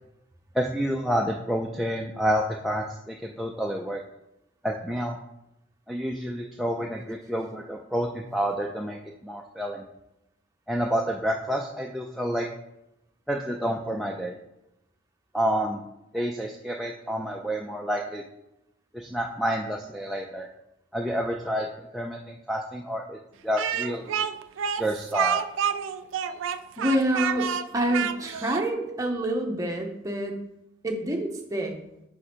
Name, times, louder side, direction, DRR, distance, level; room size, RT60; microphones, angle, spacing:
voice 1, 0.5-4.0 4.6-5.2 5.9-9.0 9.2-9.9 10.7-12.5 13.3-14.4 15.3-15.8 16.1-18.2 18.9-20.5 20.9-23.2 23.4-24.3 24.8-25.4, equal, ahead, -1 dB, 0.3 m, -29 dB
Speech, 23.6-28.7, right 8 dB, 85° right, 0.3 m, -28 dB
voice 2, 26.8-27.5 27.7-30.4 30.8-31.7, right 1 dB, 15° right, 1 dB, 0.7 m, -27 dB
4.9 x 4.8 x 4.3 m, 0.87 s
head